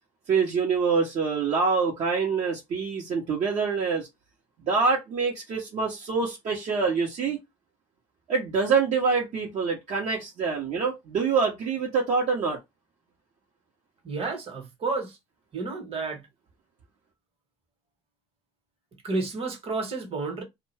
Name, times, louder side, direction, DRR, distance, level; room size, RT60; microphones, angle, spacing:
voice 1, 0.3-4.1 4.7-7.4 8.3-12.6, right 5 dB, 65° right, 1.0 m, -25 dB
voice 2, 14.0-15.2 15.5-16.2 19.0-20.4, right 3 dB, 50° right, 1.3 m, -31 dB
2.4 x 2.3 x 3.2 m
supercardioid pair, 70°, 13 cm